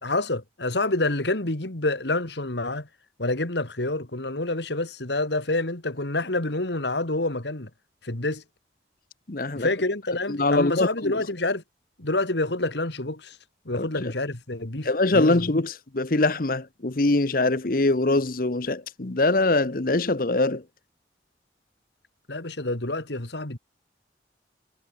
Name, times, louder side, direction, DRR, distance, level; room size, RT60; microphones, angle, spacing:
voice 1, 0.0-2.9 3.2-7.7 8.0-8.4 9.5-11.6 12.0-13.4 13.7-15.6 22.3-23.6, left 2 dB, 70° left, 2.5 m, -27 dB
voice 2, 9.3-9.7 10.3-11.1 13.8-13.9 14.8-20.6, left 2 dB, 50° left, 1.0 m, -23 dB
head